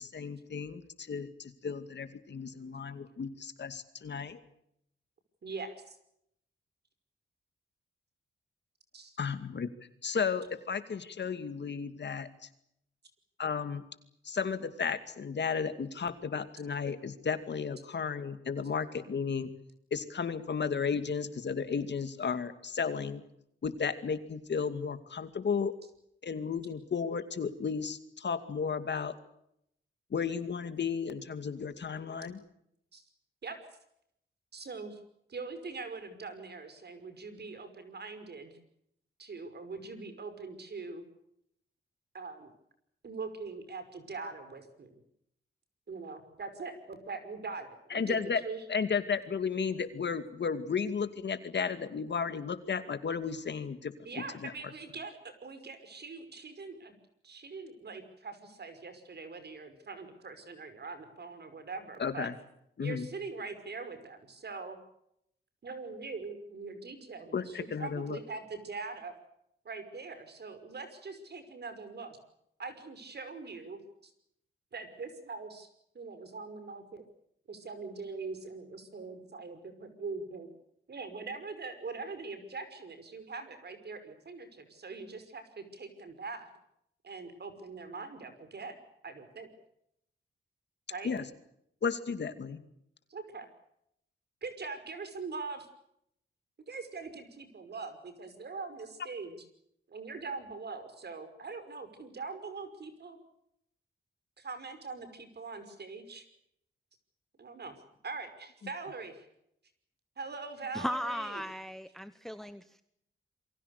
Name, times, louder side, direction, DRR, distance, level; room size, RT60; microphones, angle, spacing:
voice 1, 0.0-4.4 9.2-9.7 10.0-12.3 13.4-13.8 14.2-19.5 19.9-23.2 23.6-25.7 26.2-29.2 30.1-32.4 47.9-48.4 48.7-54.5 62.0-62.3 62.8-63.1 67.3-68.2 91.0-91.2 91.8-92.6, left 6 dB, 60° left, 10 dB, 2.4 m, -34 dB
voice 2, 5.4-6.0 8.9-9.2 32.9-33.0 33.4-33.6 34.5-35.0 35.3-38.6 39.2-41.0 42.1-42.5 43.0-45.0 45.9-48.6 54.1-56.9 57.2-62.3 62.8-64.8 65.6-69.1 69.6-72.2 72.6-74.1 74.7-75.7 75.9-77.0 77.5-80.5 80.9-86.5 87.0-88.8 89.0-89.5 90.9-91.1 93.1-93.5 94.4-95.7 96.7-99.4 99.9-103.2 104.4-106.3 107.4-107.8 108.0-109.3 110.2-111.4, right 4 dB, 55° right, 8 dB, 5.6 m, -42 dB
voice 3, 110.7-112.8, equal, ahead, 12 dB, 1.0 m, -37 dB
28.0 x 23.5 x 6.7 m, 0.75 s
wide cardioid pair, 130°, 21 cm